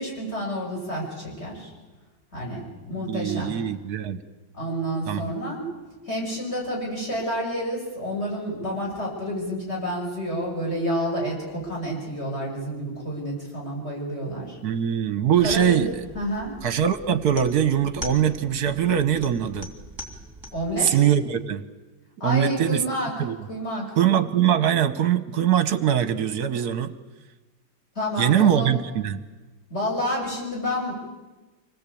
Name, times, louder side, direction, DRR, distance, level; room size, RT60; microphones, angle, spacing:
voice 1, 0.0-1.7 2.3-3.5 4.5-5.6 6.1-14.6 15.4-15.9 16.1-16.5 20.5-21.0 22.2-23.1 23.5-23.9 28.0-28.7 29.7-30.9, equal, 30° left, -1 dB, 7.0 m, -29 dB
voice 2, 3.0-4.2 5.1-5.2 14.6-15.9 16.6-19.7 20.8-21.6 22.2-22.8 23.2-23.4 24.0-26.9 28.2-29.2, right 9 dB, 60° right, 11 dB, 1.4 m, -22 dB
sound 1, 15.4-20.8, equal, 10° right, 3.0 m, -41 dB
26.0 x 18.5 x 8.5 m, 1.2 s
omnidirectional pair, 2.1 m